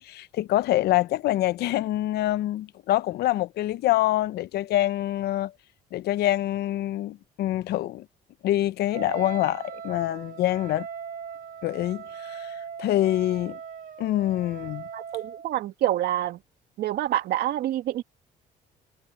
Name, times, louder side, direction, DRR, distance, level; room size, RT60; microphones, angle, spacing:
voice 1, 0.0-5.5 5.9-8.1 8.4-10.9 11.6-13.6 14.0-14.8, left 14 dB, 75° left, 0.8 m, -25 dB
Wind instrument woodwind instrument, 8.9-15.5, right 7 dB, 50° right, 1.6 m, -39 dB
voice 2, 14.9-16.4 16.8-18.0, right 13 dB, 75° right, 2.0 m, -27 dB
cardioid pair, 110°, 17 cm